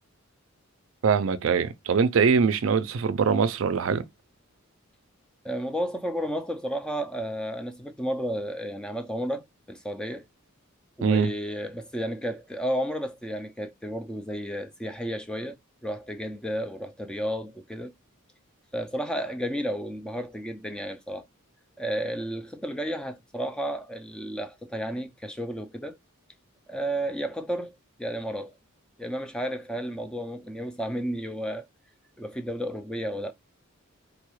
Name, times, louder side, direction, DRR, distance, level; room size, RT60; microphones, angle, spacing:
voice 1, 1.0-4.1 11.0-11.3, right 6 dB, 65° right, 0.4 m, -23 dB
voice 2, 5.4-10.3 11.0-15.6 15.8-17.9 18.7-21.3 21.8-26.0 26.7-28.6 29.0-31.7 32.2-33.3, equal, 5° left, 0.3 m, -32 dB
3.8 x 2.3 x 3.1 m
head